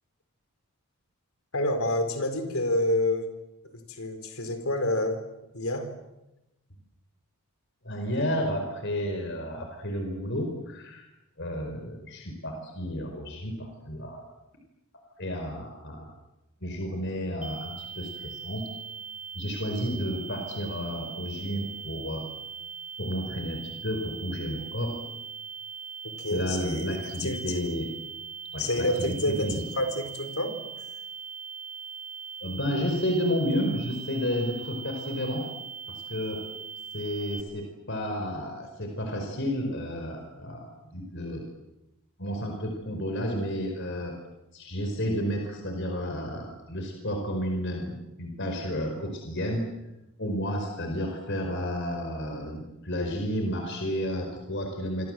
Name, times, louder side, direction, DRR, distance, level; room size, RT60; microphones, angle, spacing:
voice 1, 1.5-3.3 3.9-5.2 5.5-5.9 26.0-26.8 27.2-27.4 28.6-30.6, left 1 dB, 70° left, 8 dB, 4.6 m, -28 dB
voice 2, 7.8-11.0 11.4-14.2 15.2-16.1 16.6-18.7 19.3-22.3 23.0-25.0 26.3-27.9 28.5-29.6 32.4-35.5 35.9-36.5 36.9-41.4 42.2-44.1 44.5-49.7 50.2-55.1, equal, 55° left, 3 dB, 4.8 m, -31 dB
sound 1, 17.4-37.4, right 6 dB, 5° right, 2.4 m, -40 dB
27.5 x 25.5 x 7.8 m, 0.94 s
head